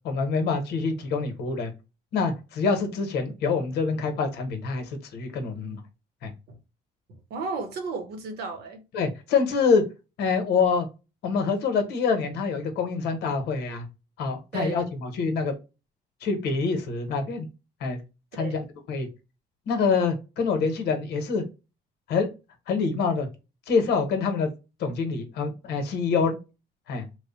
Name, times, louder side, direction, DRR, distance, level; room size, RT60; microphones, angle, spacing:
voice 1, 0.0-1.7 2.1-5.8 6.2-6.3 8.9-9.8 10.2-10.9 11.2-13.8 14.2-15.5 16.2-17.5 17.8-18.0 18.3-19.1 19.7-21.4 22.1-22.3 22.7-23.3 23.7-24.5 24.8-26.4 26.9-27.1, left 5 dB, 75° left, 0.9 m, -26 dB
voice 2, 7.1-8.8 14.5-14.8 18.3-18.6, right 4 dB, 70° right, 0.9 m, -34 dB
3.1 x 2.1 x 4.0 m
cardioid pair, 110°, 17 cm